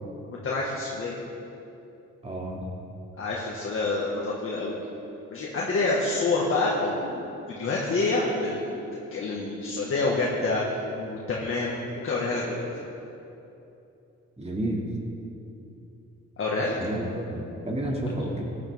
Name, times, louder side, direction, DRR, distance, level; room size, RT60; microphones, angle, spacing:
voice 1, 0.3-1.2 3.2-4.7 5.3-11.8 12.0-12.7 16.4-16.7, left 3 dB, 45° left, -5 dB, 1.8 m, -27 dB
voice 2, 2.2-2.6 14.4-14.9 16.8-18.4, right 1 dB, 20° right, -2 dB, 2.5 m, -31 dB
16.5 x 10.5 x 3.7 m, 2.8 s
cardioid pair, 90°, 30 cm